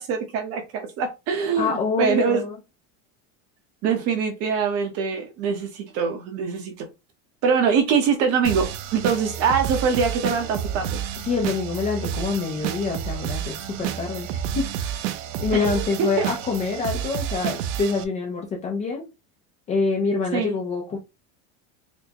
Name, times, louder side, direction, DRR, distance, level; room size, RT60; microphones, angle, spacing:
voice 1, 0.0-1.7 2.0-2.4 3.8-6.9 7.4-11.0 15.5-16.3 20.3-20.6, right 6 dB, 40° right, 0.8 m, -23 dB
voice 2, 1.6-2.6 11.2-14.3 14.5-15.0 15.4-19.1 19.7-21.0, left 4 dB, 20° left, 0.4 m, -26 dB
sound 1, 8.4-18.0, right 9 dB, 70° right, 0.6 m, -30 dB
4.3 x 2.1 x 2.8 m
cardioid pair, 170°, 38 cm